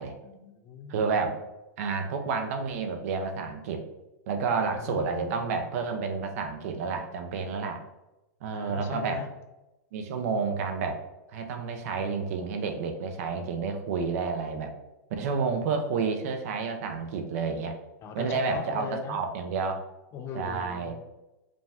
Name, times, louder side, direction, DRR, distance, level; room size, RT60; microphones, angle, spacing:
voice 1, 0.2-1.0 4.6-5.6 8.5-9.3 11.9-12.0 18.0-19.2 20.1-20.9, left 5 dB, 25° left, 6 dB, 0.4 m, -40 dB
voice 2, 0.9-1.4 1.8-3.8 4.3-7.8 8.4-9.2 9.9-11.0 11.3-14.7 15.2-17.8 18.1-19.8 20.3-20.9, right 5 dB, 55° right, 6 dB, 0.6 m, -30 dB
5.0 x 2.3 x 3.5 m, 0.98 s
supercardioid pair, 145°, 10 cm